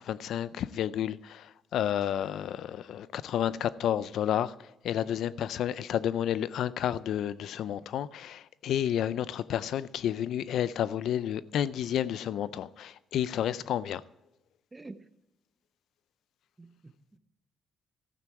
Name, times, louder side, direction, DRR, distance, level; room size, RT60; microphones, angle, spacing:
voice 1, 0.0-14.0, left 10 dB, 75° left, 0.4 m, -31 dB
voice 2, 14.7-15.1 16.6-17.2, right 2 dB, 20° right, 0.9 m, -48 dB
13.0 x 9.1 x 4.6 m
cardioid pair, 90°, 0 cm